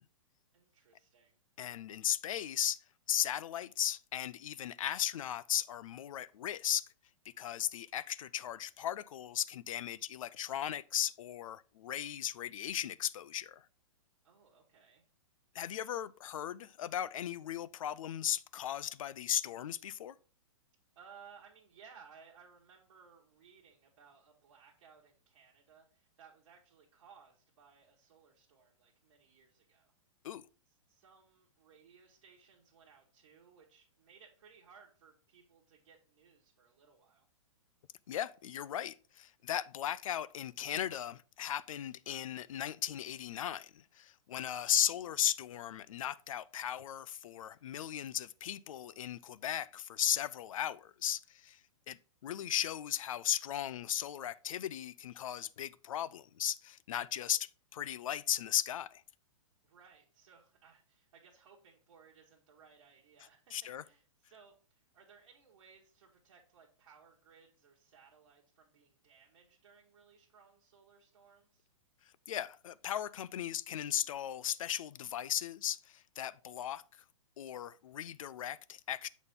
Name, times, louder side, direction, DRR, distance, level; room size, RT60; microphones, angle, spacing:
voice 1, 0.5-1.4 14.2-15.0 20.9-29.9 30.9-37.3 59.6-63.5 63.8-71.7, right 6 dB, 60° right, 1.3 m, -61 dB
voice 2, 1.6-2.8 3.1-6.9 7.4-13.7 15.5-20.2 30.2-30.4 38.1-51.6 51.9-59.0 63.5-63.8 72.3-77.0 77.4-79.1, left 11 dB, 80° left, 0.4 m, -36 dB
7.0 x 4.1 x 3.5 m
hypercardioid pair, 155°, 17 cm